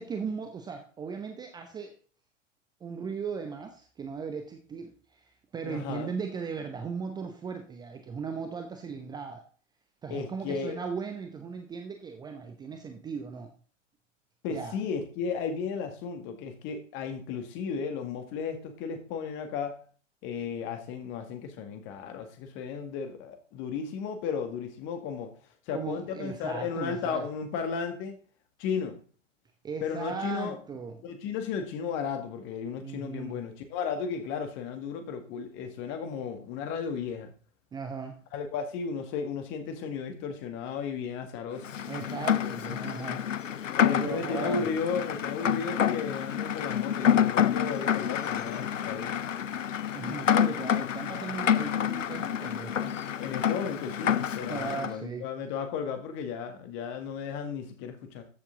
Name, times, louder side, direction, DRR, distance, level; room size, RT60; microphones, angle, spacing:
voice 1, 0.0-1.9 2.8-9.4 10.0-13.5 14.5-14.8 25.7-27.2 29.6-31.0 32.8-33.4 37.7-38.2 41.9-44.7 49.9-53.0 54.5-55.3, right 5 dB, 10° right, 5 dB, 0.8 m, -37 dB
voice 2, 5.6-6.1 10.1-10.8 14.4-19.8 20.2-25.3 25.7-28.2 28.6-29.0 29.8-30.6 31.0-37.3 38.3-41.7 42.4-42.6 43.7-49.2 52.8-58.3, left 6 dB, 30° left, 7 dB, 1.9 m, -34 dB
Rain, 41.6-54.9, left 9 dB, 75° left, 0.6 m, -28 dB
13.5 x 7.3 x 3.9 m, 0.42 s
figure-of-eight pair, 105°, 38 cm